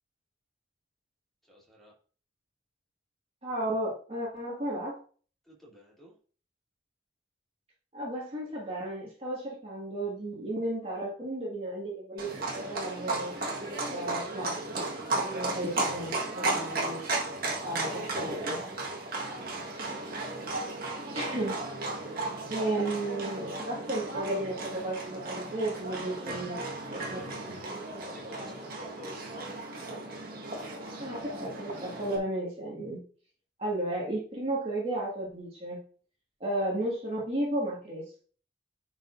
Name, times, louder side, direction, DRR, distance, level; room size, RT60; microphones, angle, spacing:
voice 1, 1.5-1.9 5.4-6.1 19.1-19.5 19.8-20.5 26.2-26.7 26.9-29.6, equal, ahead, -6 dB, 3.1 m, -51 dB
voice 2, 3.4-5.0 7.9-13.3 13.9-14.9 15.1-17.0 17.6-18.6 21.1-21.6 22.5-26.6 26.9-28.5 31.0-33.0 33.6-35.8 36.4-38.2, right 1 dB, 30° right, -5 dB, 2.1 m, -34 dB
Livestock farm animals working animals, 12.2-32.2, right 2 dB, 50° right, 1.8 m, -35 dB
10.0 x 5.0 x 2.7 m, 0.41 s
head